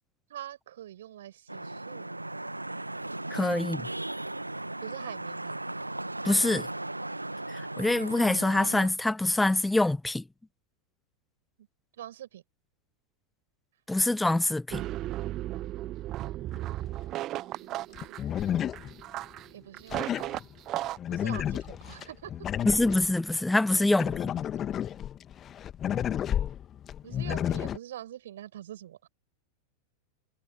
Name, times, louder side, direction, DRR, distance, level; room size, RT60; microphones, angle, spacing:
voice 1, 0.3-2.2 3.2-3.7 4.8-5.6 11.9-12.4 16.2-16.3 17.6-18.1 19.5-20.3 21.1-22.3 23.7-23.9 24.7-24.8 27.0-29.1, right 12 dB, 60° right, 5.7 m, -45 dB
Vehicle horn car horn honking / Traffic noise roadway noise, 1.5-8.9, right 2 dB, 85° right, 1.9 m, -37 dB
voice 2, 3.3-3.8 6.2-6.7 7.5-10.2 13.9-14.8 22.7-24.3, left 2 dB, 5° left, 0.3 m, -25 dB
sound 1, 14.7-21.0, right 15 dB, 35° right, 1.0 m, -35 dB
sound 2, 16.5-16.6 18.0-19.4 19.9-23.1 23.8-27.8, left 10 dB, 25° left, 1.8 m, -32 dB
figure-of-eight pair, 90°, 0 cm